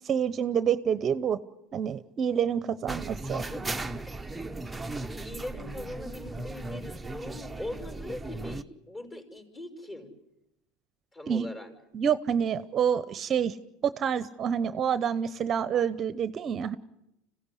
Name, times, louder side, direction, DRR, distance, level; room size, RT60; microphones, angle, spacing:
voice 1, 0.0-1.4 1.7-3.4 11.3-11.5 11.9-13.6 13.8-16.8, right 8 dB, 35° right, 15 dB, 0.8 m, -27 dB
sound 1, 2.9-8.6, right 2 dB, 10° right, 0.9 m, -37 dB
voice 2, 3.2-3.6 5.0-10.1 11.1-11.7, left 1 dB, 25° left, 5 dB, 5.4 m, -41 dB
26.0 x 16.0 x 9.9 m, 0.90 s
supercardioid pair, 105°, 0 cm